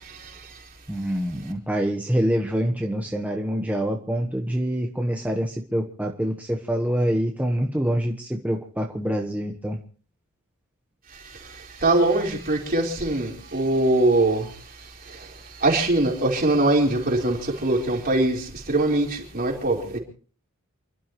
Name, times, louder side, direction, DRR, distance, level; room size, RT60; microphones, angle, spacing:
voice 1, 0.9-9.8, equal, 5° right, 1 dB, 1.2 m, -26 dB
voice 2, 11.8-14.5 15.1-15.3 15.6-20.0, right 2 dB, 45° right, -1 dB, 4.3 m, -22 dB
29.0 x 12.5 x 3.1 m, 0.42 s
head